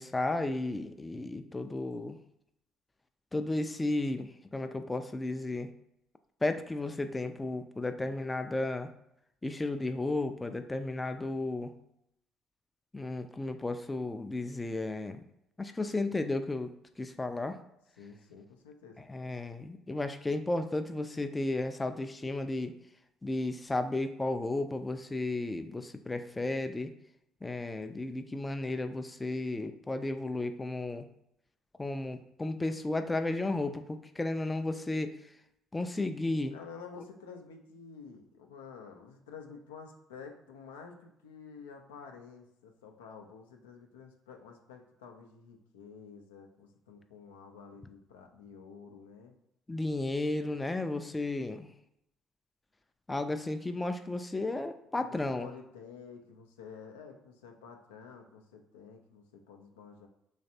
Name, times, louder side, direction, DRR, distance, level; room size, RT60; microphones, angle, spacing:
voice 1, 0.0-2.2 3.3-5.7 6.4-8.9 9.4-11.7 12.9-15.2 15.6-16.7 17.0-17.6 19.1-22.7 23.2-26.9 27.4-31.1 31.8-35.1 35.7-36.5 49.7-51.7 53.1-55.5, left 2 dB, 20° left, 8 dB, 0.3 m, -33 dB
voice 2, 18.0-19.1 36.5-49.4 55.0-60.1, left 6 dB, 85° left, 3 dB, 0.4 m, -50 dB
3.2 x 3.1 x 2.7 m, 0.79 s
hypercardioid pair, 55°, 0 cm